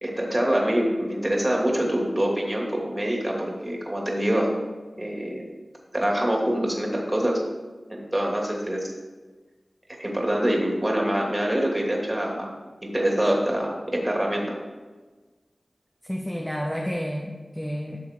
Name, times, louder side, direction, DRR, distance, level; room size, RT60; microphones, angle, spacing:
voice 1, 0.0-4.5 5.0-5.4 5.9-7.4 7.9-8.9 10.0-12.5 12.8-14.6, right 1 dB, 25° right, -1 dB, 2.4 m, -25 dB
voice 2, 16.0-18.0, equal, 10° left, 0 dB, 1.0 m, -30 dB
13.0 x 6.3 x 3.7 m, 1.3 s
wide cardioid pair, 50°, 0 cm